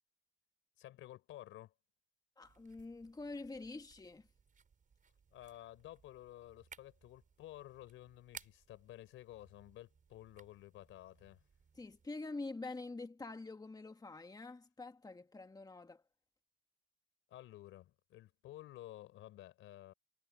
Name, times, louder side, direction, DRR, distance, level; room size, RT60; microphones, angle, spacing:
voice 1, 0.8-1.7 5.3-11.4 17.3-19.9, left 14 dB, 90° left, 4.8 m, -53 dB
voice 2, 2.4-4.3 11.8-16.0, left 3 dB, 20° left, 1.7 m, -46 dB
sound 1, 2.4-12.1, right 6 dB, 40° right, 5.3 m, -61 dB
cardioid pair, 90°, 20 cm